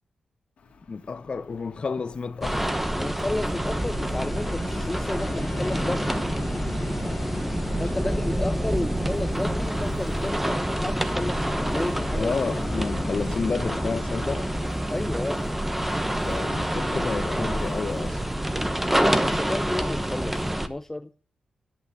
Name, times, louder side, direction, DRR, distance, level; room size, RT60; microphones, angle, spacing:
Fixed-wing aircraft airplane, 0.6-18.4, left 3 dB, 80° left, 2.2 m, -40 dB
voice 1, 0.9-2.7 7.9-8.4 12.2-14.5 16.2-18.2, left 4 dB, 50° left, 0.8 m, -31 dB
sound 1, 2.4-20.7, right 1 dB, 10° right, 1.0 m, -27 dB
voice 2, 2.9-6.1 7.8-12.3 12.8-12.9 14.9-15.4 19.2-21.1, left 2 dB, 15° left, 0.4 m, -32 dB
11.0 x 5.7 x 6.4 m
cardioid pair, 85°, 2 cm